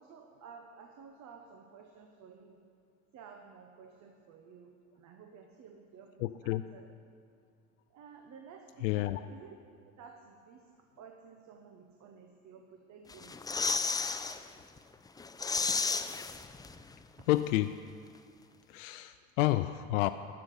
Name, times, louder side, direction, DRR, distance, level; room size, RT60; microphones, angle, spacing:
voice 1, 0.0-2.6 3.1-6.9 7.9-9.6 10.0-10.7 11.0-14.1, right 6 dB, 45° right, 4 dB, 1.1 m, -53 dB
voice 2, 6.2-6.7 8.8-9.3 17.3-17.8 18.7-20.1, left 16 dB, 70° left, 10 dB, 0.5 m, -30 dB
sound 1, 13.1-14.4 14.8-14.9 15.2-16.9 17.2-17.3, left 4 dB, 10° left, 0.5 m, -33 dB
12.5 x 7.3 x 8.2 m, 2.3 s
hypercardioid pair, 75°, 40 cm